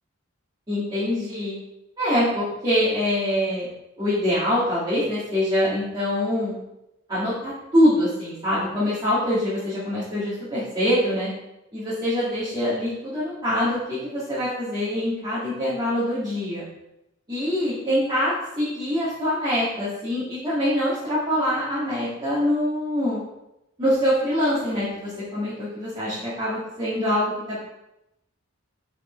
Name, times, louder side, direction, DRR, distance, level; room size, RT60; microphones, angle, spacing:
voice 1, 0.7-1.5 2.0-3.7 4.0-6.5 7.1-11.3 11.7-16.6 17.3-23.2 23.8-27.6, equal, 20° right, -11 dB, 2.5 m, -24 dB
6.5 x 5.9 x 4.6 m, 0.89 s
head